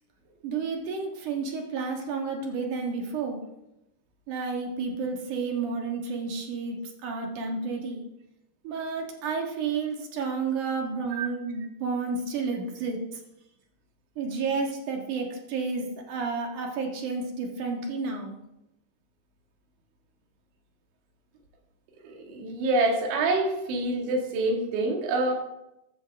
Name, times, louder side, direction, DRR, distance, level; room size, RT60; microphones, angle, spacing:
voice 1, 0.4-3.4 4.3-8.0 8.6-13.0 14.2-18.4, right 4 dB, 60° right, 2 dB, 2.4 m, -31 dB
voice 2, 22.0-25.3, right 2 dB, 80° right, 2 dB, 4.3 m, -26 dB
13.5 x 13.0 x 3.5 m, 0.89 s
omnidirectional pair, 5.3 m